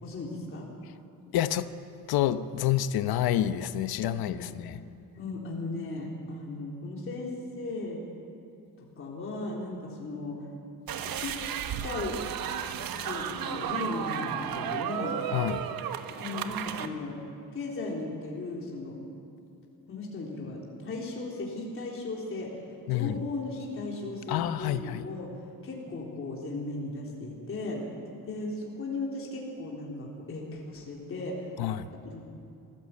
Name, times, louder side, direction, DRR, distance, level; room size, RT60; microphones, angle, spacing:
voice 1, 0.0-0.7 4.1-4.6 5.2-8.0 9.0-10.4 11.0-11.4 11.8-12.2 12.9-15.2 16.2-17.2 17.5-19.0 19.9-22.5 22.9-25.3 25.6-27.8 28.3-31.6 32.1-32.2, left 2 dB, 35° left, -3 dB, 3.6 m, -36 dB
voice 2, 1.3-1.7 2.1-4.8 15.3-15.6 22.9-23.2 24.3-25.0 31.6-31.9, left 11 dB, 80° left, 12 dB, 0.9 m, -28 dB
sound 1, 10.9-16.9, right 9 dB, 70° right, 1.2 m, -33 dB
24.0 x 15.0 x 8.5 m, 2.6 s
cardioid pair, 155°, 36 cm